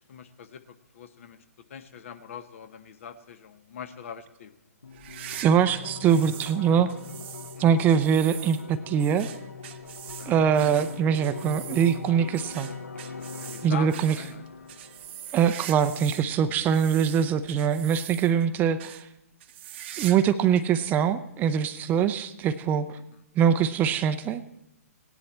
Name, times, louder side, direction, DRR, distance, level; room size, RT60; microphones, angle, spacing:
voice 1, 0.1-0.6 0.9-1.4 1.7-4.5 7.5-7.7 10.2-10.3 13.4-14.5, left 7 dB, 55° left, 11 dB, 1.0 m, -42 dB
sound 1, 4.8-15.8, left 5 dB, 85° left, 0.8 m, -42 dB
sound 2, 4.9-6.6 6.9-16.3 16.6-18.5 18.8-19.0 19.4-20.3 20.6-20.7 21.4-21.5 22.8-22.9, right 11 dB, 45° right, 0.8 m, -42 dB
voice 2, 5.4-6.9 7.6-9.3 10.3-12.7 13.6-14.2 15.3-19.0 20.0-23.0 23.4-24.4, right 8 dB, 20° right, 12 dB, 0.5 m, -23 dB
17.0 x 10.5 x 4.3 m, 0.85 s
figure-of-eight pair, 130°, 8 cm